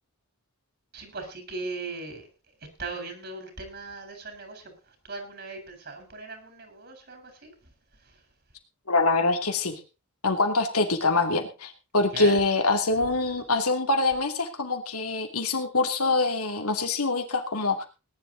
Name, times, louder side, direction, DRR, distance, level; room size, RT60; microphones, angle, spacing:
voice 1, 0.9-2.3 2.8-7.7 8.0-8.2 12.1-12.6, right 3 dB, 50° right, 6 dB, 4.2 m, -39 dB
voice 2, 8.9-9.8 10.2-17.8, left 3 dB, 80° left, 5 dB, 2.6 m, -25 dB
19.0 x 10.5 x 3.9 m, 0.32 s
head